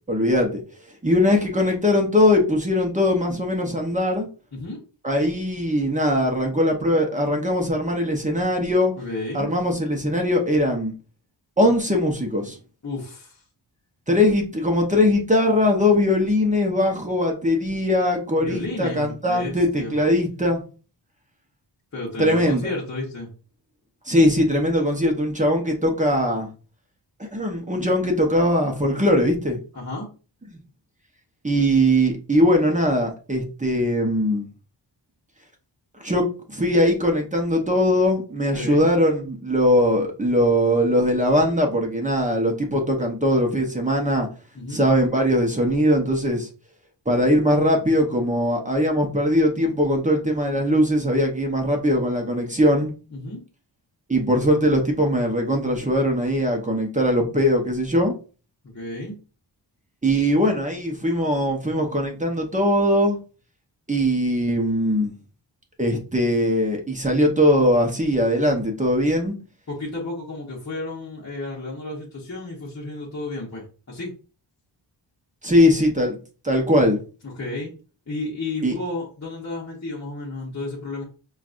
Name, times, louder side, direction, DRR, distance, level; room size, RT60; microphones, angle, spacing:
voice 1, 0.1-0.6 1.0-4.3 5.0-8.9 9.3-10.9 11.6-12.6 14.1-20.6 22.2-22.6 24.1-26.5 27.3-29.6 30.5-30.6 31.4-34.5 36.0-44.3 44.7-46.5 47.1-52.9 54.1-58.1 60.0-63.2 63.9-65.1 65.8-69.4 75.4-76.2 76.4-77.0 78.6-78.8, left 1 dB, 15° right, 2 dB, 0.7 m, -20 dB
voice 2, 9.0-9.5 12.8-13.4 18.4-20.0 21.9-23.3 29.7-30.1 38.5-38.9 44.5-44.9 53.1-53.4 58.6-59.2 69.7-74.1 77.2-77.7 78.1-81.0, left 2 dB, 35° left, -5 dB, 1.0 m, -32 dB
5.7 x 2.4 x 2.5 m, 0.36 s
wide cardioid pair, 130°, 44 cm